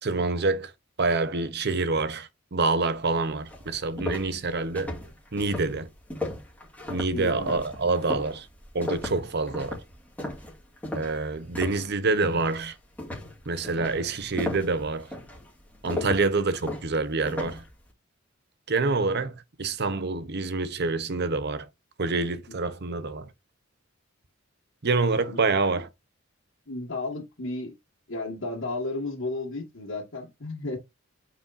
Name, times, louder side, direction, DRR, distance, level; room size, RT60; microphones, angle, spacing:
voice 1, 0.0-0.7 1.0-4.9 5.3-5.9 6.9-8.5 8.7-9.8 10.9-12.8 13.5-15.1 15.8-17.6 18.7-21.7 22.0-23.3 24.8-25.9, right 3 dB, 55° right, 0.8 m, -27 dB
sound 1, 3.0-3.1 3.5-11.9 12.2-12.6 13.0-17.7, left 1 dB, 10° left, 2.4 m, -36 dB
voice 2, 7.1-7.5 15.9-16.2 22.5-22.7 25.3-25.4 26.7-27.7 28.1-30.8, left 2 dB, 60° left, 1.9 m, -33 dB
8.4 x 4.9 x 2.6 m
head